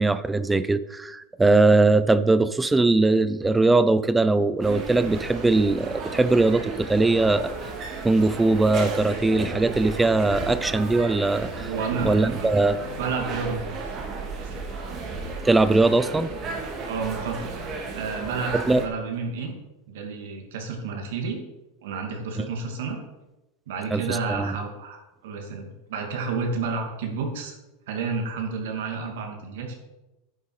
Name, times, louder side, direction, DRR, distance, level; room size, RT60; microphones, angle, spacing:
voice 1, 0.0-7.5 8.0-11.7 12.0-12.8 15.4-16.3 18.7-18.8 22.4-22.5 23.9-24.6, right 2 dB, 10° right, 15 dB, 0.4 m, -21 dB
sound 1, 4.6-18.9, right 3 dB, 30° right, 1.8 m, -33 dB
voice 2, 11.7-12.5 13.0-13.8 14.4-14.6 16.8-17.5 17.9-19.5 19.9-21.4 21.8-23.0 23.7-27.6 27.9-29.7, right 4 dB, 75° right, 3 dB, 2.4 m, -31 dB
10.0 x 7.4 x 4.8 m, 1.0 s
supercardioid pair, 155°, 0 cm